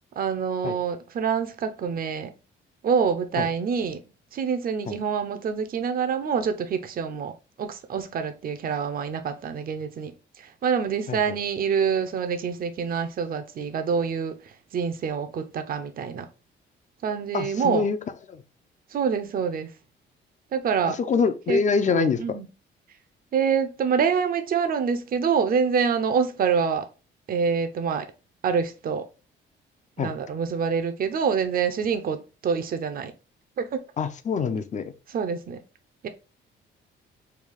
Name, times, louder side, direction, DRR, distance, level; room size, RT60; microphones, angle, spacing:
voice 1, 0.2-2.3 2.8-4.0 4.3-16.3 17.0-17.9 18.9-19.7 20.5-21.0 21.5-21.6 21.9-22.5 23.3-26.9 27.3-28.1 28.4-29.1 30.0-33.1 33.6-33.8 35.1-35.6 36.0-36.1, right 6 dB, 45° right, 0.6 m, -26 dB
voice 2, 17.3-18.0 18.3-18.4 21.1-22.2 30.0-30.1 34.0-34.9, left 5 dB, 40° left, 0.5 m, -24 dB
3.3 x 2.3 x 3.5 m
cardioid pair, 90°, 20 cm